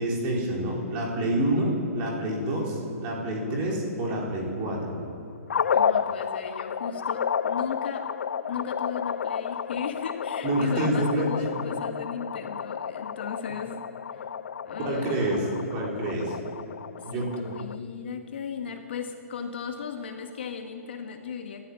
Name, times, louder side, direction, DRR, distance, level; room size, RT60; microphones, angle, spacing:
voice 1, 0.0-5.0 10.4-11.3 14.8-15.4 15.7-16.4 17.0-17.5, right 1 dB, 15° right, -2 dB, 4.6 m, -27 dB
sound 1, 5.5-17.8, left 7 dB, 60° left, 0.7 m, -31 dB
voice 2, 5.7-8.1 8.5-13.9 14.1-14.3 14.7-15.7 17.0-21.6, left 6 dB, 45° left, 4 dB, 1.8 m, -36 dB
26.5 x 14.5 x 9.8 m, 2.7 s
hypercardioid pair, 180°, 8 cm